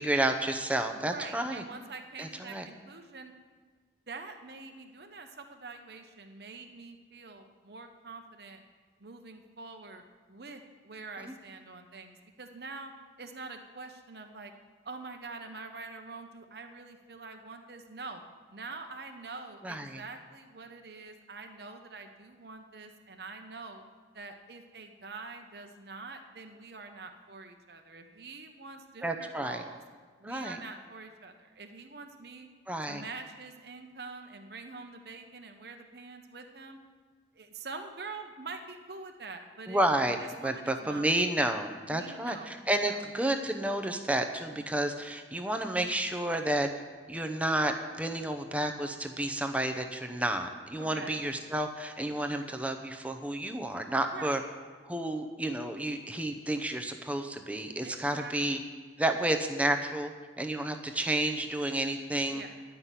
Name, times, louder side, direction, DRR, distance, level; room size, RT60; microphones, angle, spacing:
voice 1, 0.0-1.6 2.2-2.7 11.2-11.3 19.6-20.0 29.0-29.6 30.2-30.6 32.7-33.0 39.7-46.7 47.1-54.4 54.9-58.6 59.0-62.4, right 1 dB, 10° right, 6 dB, 0.7 m, -31 dB
voice 2, 0.9-3.3 4.1-8.6 9.0-12.9 13.2-14.5 14.8-18.2 18.5-23.8 24.1-29.8 30.2-32.5 32.9-36.8 37.3-39.8 40.2-41.1 41.9-42.5 42.9-43.0 44.5-44.8 50.8-51.2 54.0-54.4 57.8-58.7 62.2-62.6, right 3 dB, 65° right, 5 dB, 0.8 m, -45 dB
11.0 x 5.8 x 8.1 m, 1.5 s
head